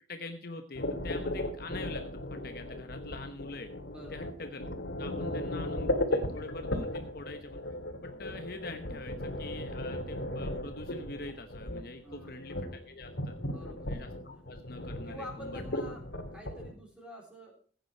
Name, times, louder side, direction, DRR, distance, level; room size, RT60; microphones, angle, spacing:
voice 1, 0.1-3.7 4.1-4.6 5.0-7.6 8.0-13.4 13.9-15.8, left 3 dB, 55° left, 7 dB, 1.0 m, -45 dB
sound 1, 0.7-16.7, left 1 dB, 80° left, 2.2 m, -36 dB
voice 2, 3.9-4.3 5.2-5.5 12.0-12.4 13.5-14.0 15.1-16.0 16.3-17.6, equal, 5° right, -1 dB, 3.6 m, -47 dB
15.5 x 9.3 x 4.4 m, 0.43 s
head